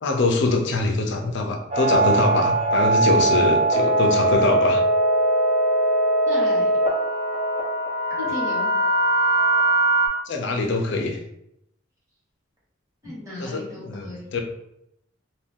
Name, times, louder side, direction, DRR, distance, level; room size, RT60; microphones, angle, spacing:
voice 1, 0.0-4.8 10.3-11.2 13.4-14.4, left 3 dB, 65° left, 3 dB, 0.5 m, -23 dB
sound 1, 1.7-10.1, right 2 dB, 35° right, 0.9 m, -20 dB
voice 2, 6.3-6.7 8.1-8.7 13.0-14.3, left 2 dB, 15° right, -8 dB, 1.2 m, -34 dB
2.6 x 2.3 x 3.5 m, 0.79 s
head